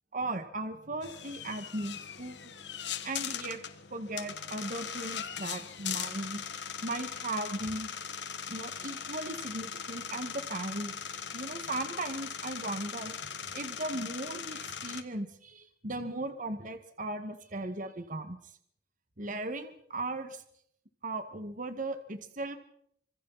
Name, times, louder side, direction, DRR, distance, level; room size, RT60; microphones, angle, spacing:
voice 1, 0.1-2.5 3.0-3.6 3.9-6.4 6.8-7.9 8.5-10.9 11.3-13.1 13.5-18.4 19.2-20.4 21.0-22.6, right 2 dB, 50° right, 8 dB, 1.9 m, -37 dB
sound 1, 1.0-15.0, left 7 dB, 75° left, 1.6 m, -40 dB
28.0 x 26.0 x 4.2 m, 0.69 s
head